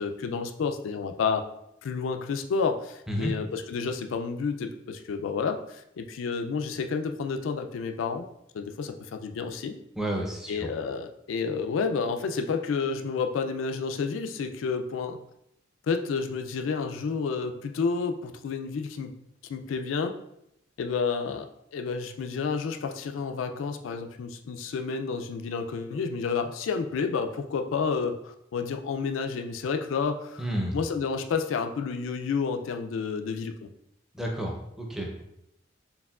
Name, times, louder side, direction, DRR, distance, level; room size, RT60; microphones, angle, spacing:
voice 1, 0.0-1.4 1.8-8.3 8.5-9.7 10.5-15.2 15.9-19.1 19.5-20.2 20.8-30.5 30.7-33.5, left 5 dB, 85° left, 6 dB, 0.3 m, -30 dB
voice 2, 10.0-10.7 30.4-30.8 34.1-35.2, equal, ahead, 0 dB, 0.5 m, -31 dB
4.5 x 3.5 x 2.3 m, 0.79 s
head